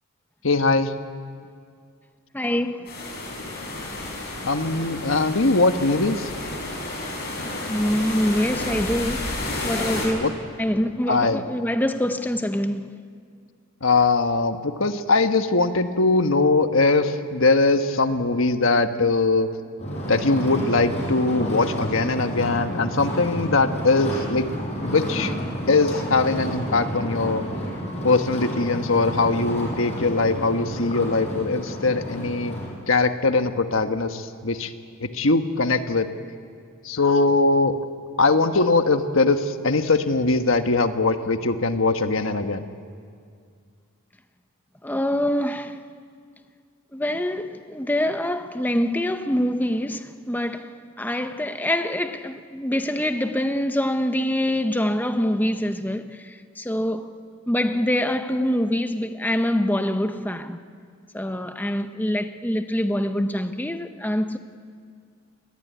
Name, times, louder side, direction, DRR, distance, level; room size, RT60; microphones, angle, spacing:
voice 1, 0.4-0.9 4.4-6.3 10.2-10.3 11.1-11.4 13.8-19.5 20.1-24.4 24.8-25.3 25.7-27.4 28.0-32.6 32.9-34.7 35.0-36.1 36.8-37.8 38.2-42.6, left 3 dB, 70° left, 1.4 m, -21 dB
voice 2, 2.3-2.9 7.6-9.4 9.6-12.9 44.8-45.8 46.9-57.1 57.5-60.6 61.1-64.4, left 1 dB, 10° left, 0.9 m, -25 dB
sound 1, 2.9-10.1, left 2 dB, 45° left, 7.2 m, -31 dB
sound 2, 19.8-32.7, equal, 30° left, 6.7 m, -30 dB
25.5 x 20.5 x 9.4 m
head